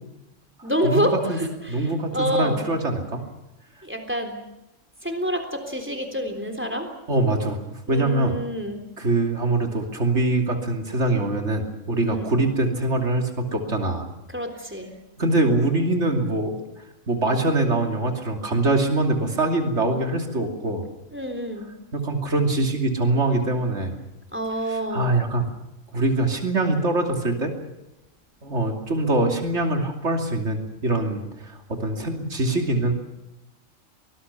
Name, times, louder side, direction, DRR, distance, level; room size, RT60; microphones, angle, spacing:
voice 1, 0.6-2.6 3.8-4.4 5.0-6.9 7.9-8.8 12.1-12.3 14.3-14.9 21.1-21.7 24.3-25.2, equal, 10° right, 7 dB, 3.6 m, -27 dB
voice 2, 1.7-3.2 7.1-8.4 9.0-14.1 15.2-16.5 17.1-20.8 21.9-24.0 24.7-25.5 25.9-27.5 28.4-32.9, right 2 dB, 60° right, 4 dB, 3.1 m, -23 dB
24.5 x 20.0 x 7.1 m, 0.93 s
omnidirectional pair, 1.4 m